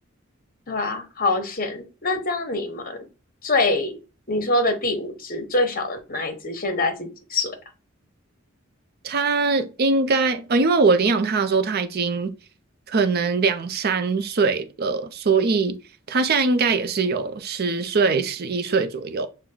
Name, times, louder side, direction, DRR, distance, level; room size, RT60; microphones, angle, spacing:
voice 1, 0.7-3.0 3.4-4.0 4.3-7.6, left 2 dB, 45° left, 1.0 m, -25 dB
voice 2, 9.0-12.3 12.9-15.8 16.1-19.3, right 4 dB, 50° right, 0.6 m, -22 dB
6.0 x 2.2 x 3.7 m
head